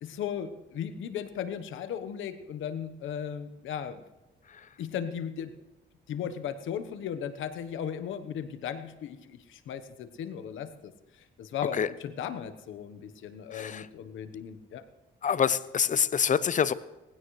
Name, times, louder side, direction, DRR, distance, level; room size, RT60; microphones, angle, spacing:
voice 1, 0.0-4.0 4.8-5.5 6.1-14.8, left 8 dB, 80° left, 10 dB, 1.1 m, -36 dB
voice 2, 13.5-13.9 15.2-16.7, left 7 dB, 40° left, 17 dB, 0.6 m, -26 dB
19.0 x 16.0 x 3.2 m, 1.0 s
cardioid pair, 90°, 20 cm